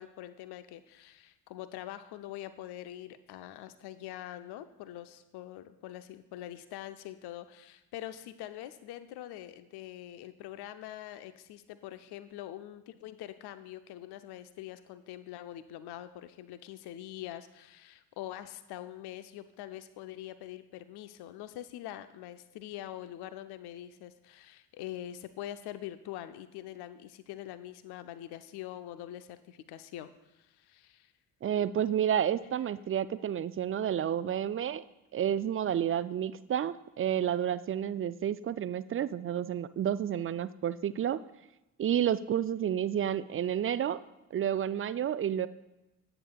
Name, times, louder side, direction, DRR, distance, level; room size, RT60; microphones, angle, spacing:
voice 1, 0.0-31.1, left 13 dB, 55° left, 12 dB, 0.7 m, -44 dB
voice 2, 31.4-34.8 35.1-41.2 41.8-44.0 44.3-45.5, right 9 dB, 30° right, 15 dB, 0.4 m, -30 dB
20.5 x 8.8 x 2.4 m, 0.97 s
figure-of-eight pair, 40°, 48 cm